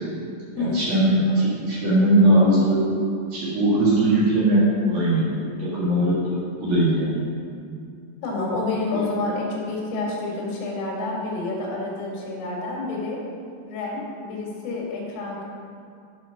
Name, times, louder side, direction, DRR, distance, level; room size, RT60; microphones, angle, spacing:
voice 1, 0.6-2.9 3.3-7.2 8.9-9.0, right 1 dB, 60° right, -8 dB, 3.0 m, -20 dB
voice 2, 8.2-13.2 13.7-15.5, left 3 dB, 85° left, -2 dB, 4.1 m, -28 dB
11.5 x 4.2 x 5.5 m, 2.4 s
omnidirectional pair, 5.7 m